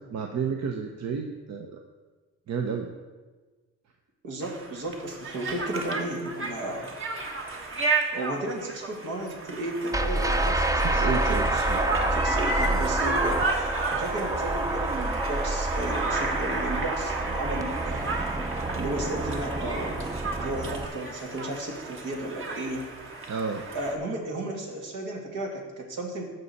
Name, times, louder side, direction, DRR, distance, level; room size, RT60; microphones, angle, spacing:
voice 1, 0.0-1.8 2.5-2.9 10.8-12.1 23.3-23.6, right 6 dB, 60° right, 3 dB, 0.9 m, -31 dB
voice 2, 4.2-6.9 7.7-7.8 8.1-11.7 12.1-18.1 18.8-20.0 20.3-22.9 23.7-26.2, right 1 dB, 80° right, 0 dB, 2.2 m, -34 dB
Conversation, 4.4-24.0, right 3 dB, 45° right, 1.5 m, -33 dB
sound 1, 9.9-20.9, right 2 dB, 10° right, 0.5 m, -28 dB
14.5 x 5.4 x 4.2 m, 1.3 s
cardioid pair, 90°, 30 cm